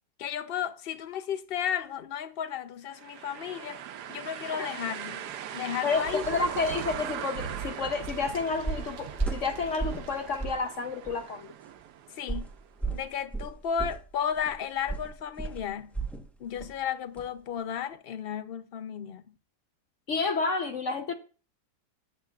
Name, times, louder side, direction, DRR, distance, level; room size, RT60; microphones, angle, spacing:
voice 1, 0.2-3.8 4.1-6.3 12.1-12.5 12.9-15.9 16.4-19.2, left 8 dB, 80° left, 0.5 m, -34 dB
sound 1, 2.9-12.7, right 10 dB, 90° right, 1.3 m, -40 dB
voice 2, 5.8-11.5 20.1-21.1, left 4 dB, 55° left, 1.0 m, -30 dB
sound 2, 5.9-10.4, right 6 dB, 65° right, 1.3 m, -44 dB
sound 3, 7.5-7.7 8.1-8.3 8.7-10.1 10.4-10.7 11.0-11.2 12.3-16.3 16.6-16.8 17.2-17.3, right 4 dB, ahead, 0.7 m, -34 dB
14.0 x 8.8 x 2.4 m
omnidirectional pair, 1.7 m